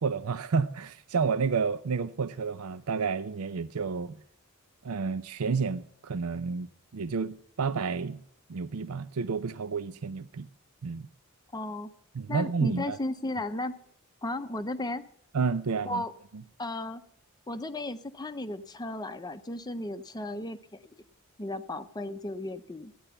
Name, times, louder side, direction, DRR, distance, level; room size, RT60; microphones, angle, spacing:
voice 1, 0.0-4.2 4.8-8.2 8.5-10.5 10.8-11.1 12.1-13.0 15.3-16.0, right 5 dB, 80° right, 13 dB, 0.6 m, -30 dB
voice 2, 11.5-11.9 12.3-13.8 14.2-15.0 15.8-16.1 16.6-17.0 17.5-20.8 21.4-22.9, left 1 dB, 20° left, 10 dB, 0.6 m, -35 dB
15.0 x 10.0 x 6.8 m, 0.65 s
head